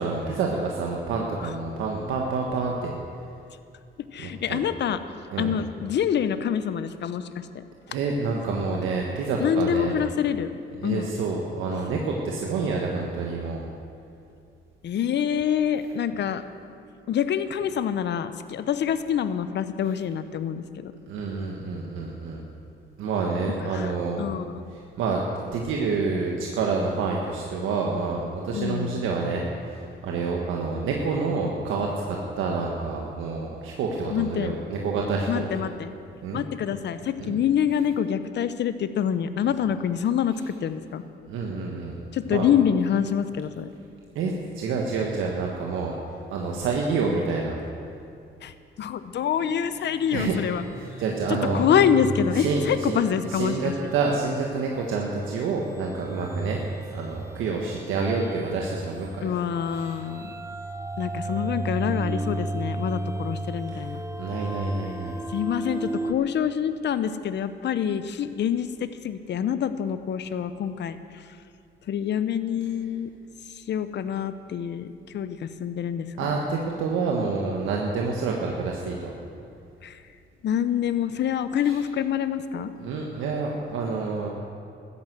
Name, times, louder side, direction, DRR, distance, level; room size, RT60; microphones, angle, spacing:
voice 1, 0.0-2.9 4.2-4.6 5.3-5.5 7.9-9.9 10.8-13.6 21.1-22.4 23.0-24.2 25.0-35.4 36.2-36.4 37.2-37.3 41.3-42.0 42.3-42.5 44.1-45.9 46.3-47.6 50.1-50.4 50.7-51.6 52.3-53.0 53.3-56.6 56.9-59.3 59.7-60.0 64.1-65.1 76.2-79.1 81.6-81.8 82.8-84.3, right 4 dB, 85° right, -1 dB, 1.4 m, -28 dB
voice 2, 4.1-5.0 5.4-7.6 9.4-10.5 10.8-11.1 14.8-16.4 17.1-20.9 23.7-24.6 28.5-29.0 34.1-34.6 35.3-35.9 36.3-41.0 42.1-43.7 48.4-50.6 51.3-53.9 57.6-57.7 59.2-60.3 61.0-64.0 65.3-71.2 71.9-73.1 73.5-76.3 79.8-80.0 80.4-82.7, left 8 dB, 60° left, 12 dB, 0.8 m, -26 dB
sound 1, 49.4-58.5 58.8-66.1, right 2 dB, 15° right, 0.9 m, -35 dB
13.5 x 10.0 x 8.0 m, 2.5 s
cardioid pair, 90°, 20 cm